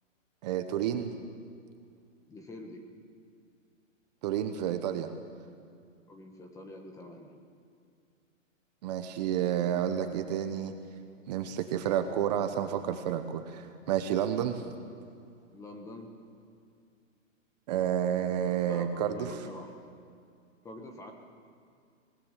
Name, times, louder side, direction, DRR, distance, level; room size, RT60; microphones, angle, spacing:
voice 1, 0.4-1.1 4.2-5.1 8.8-10.7 11.3-14.6 17.7-19.4, right 10 dB, 30° right, 8 dB, 1.1 m, -30 dB
voice 2, 2.3-2.8 6.1-7.4 15.5-16.1 18.7-19.7 20.6-21.1, left 1 dB, 10° left, 4 dB, 1.3 m, -46 dB
24.5 x 19.0 x 7.5 m, 2.3 s
hypercardioid pair, 160°, 40 cm